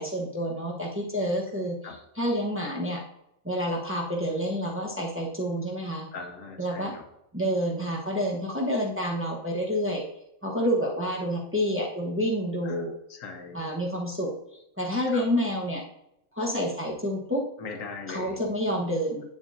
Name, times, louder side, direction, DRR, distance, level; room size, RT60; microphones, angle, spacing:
voice 1, 0.0-3.0 3.4-6.1 6.6-6.9 7.3-10.1 10.4-12.9 13.5-15.8 16.3-17.5 18.1-19.2, equal, 10° right, -2 dB, 1.0 m, -28 dB
voice 2, 6.1-7.0 12.6-12.8 13.1-13.6 15.1-15.2 17.6-18.4, left 4 dB, 80° left, 5 dB, 1.3 m, -39 dB
8.1 x 7.1 x 2.6 m, 0.81 s
omnidirectional pair, 1.4 m